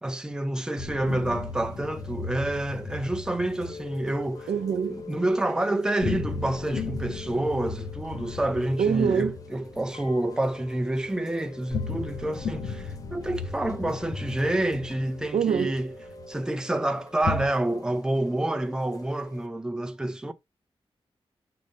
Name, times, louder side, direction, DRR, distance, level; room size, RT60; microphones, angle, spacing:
voice 1, 0.0-4.5 4.7-15.9 16.3-20.3, right 1 dB, 5° right, 0.6 m, -28 dB
sound 1, 0.8-5.2 6.0-11.1 11.6-16.3 17.2-17.4, left 4 dB, 75° left, 1.1 m, -36 dB
Chime / Rain, 1.1-19.5, left 4 dB, 35° left, 1.1 m, -46 dB
voice 2, 4.5-5.0 8.8-9.3 15.3-15.7, right 7 dB, 85° right, 0.6 m, -24 dB
6.7 x 3.4 x 5.1 m
wide cardioid pair, 170°, 10 cm